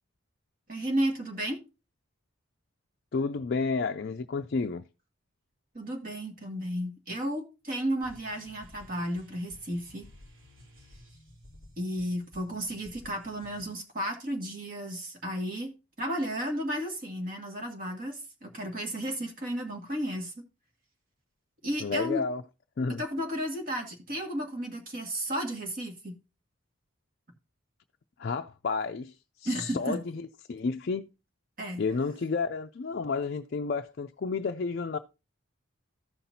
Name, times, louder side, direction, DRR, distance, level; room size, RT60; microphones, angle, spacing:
voice 1, 0.7-1.6 5.7-10.1 11.8-15.7 16.0-20.4 21.6-22.2 22.9-26.2 29.4-30.0 31.6-31.8, equal, 45° right, 2.0 m, -33 dB
voice 2, 3.1-4.8 21.8-22.4 22.8-23.0 28.2-29.1 29.4-31.1 31.8-35.0, left 4 dB, 50° left, 0.4 m, -31 dB
sound 1, 8.0-13.7, left 1 dB, 80° right, 3.7 m, -54 dB
14.5 x 5.8 x 2.7 m
head